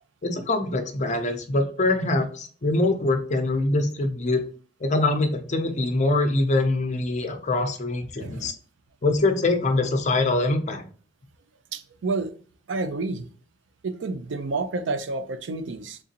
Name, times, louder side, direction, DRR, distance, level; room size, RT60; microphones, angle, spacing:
voice 1, 0.2-4.4 4.8-8.5 9.0-10.8, left 2 dB, 40° left, 7 dB, 0.6 m, -24 dB
voice 2, 8.2-8.5 11.7-12.3 12.7-13.3 13.8-16.0, right 3 dB, 70° right, 11 dB, 0.5 m, -29 dB
3.8 x 3.6 x 2.8 m, 0.42 s
head